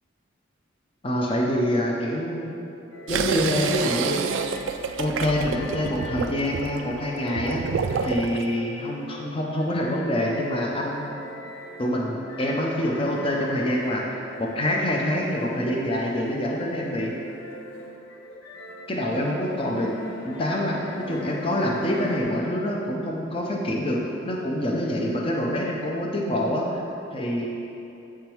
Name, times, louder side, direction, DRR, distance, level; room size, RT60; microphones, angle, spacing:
voice 1, 1.0-2.5 3.1-4.2 5.0-7.6 8.0-11.2 11.8-17.1 18.9-19.9 20.2-26.8 27.1-27.5, left 1 dB, 30° left, -1 dB, 0.6 m, -26 dB
sound 1, 2.9-22.2, left 1 dB, 85° left, 0.6 m, -42 dB
sound 2, 3.1-8.4, right 6 dB, 75° right, 0.3 m, -28 dB
7.6 x 3.6 x 4.5 m, 2.9 s
head